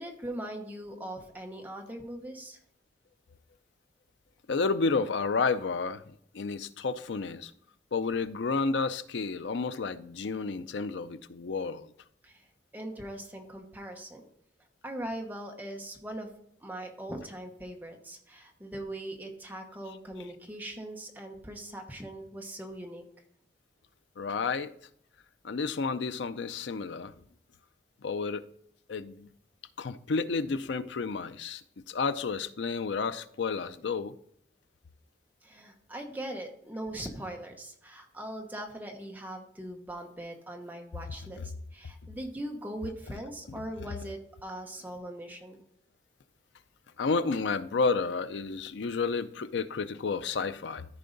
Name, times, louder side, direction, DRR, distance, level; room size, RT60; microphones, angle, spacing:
voice 1, 0.0-2.6 12.2-12.5 12.7-14.2 14.8-16.3 16.6-23.0 35.4-45.6, right 1 dB, 10° right, 1.0 m, -40 dB
voice 2, 4.5-6.0 6.3-7.5 7.9-11.9 24.2-24.7 25.4-27.1 28.0-28.5 28.9-29.3 29.8-31.6 31.9-34.1 47.0-50.9, left 4 dB, 80° left, 0.5 m, -31 dB
14.0 x 4.7 x 3.9 m
head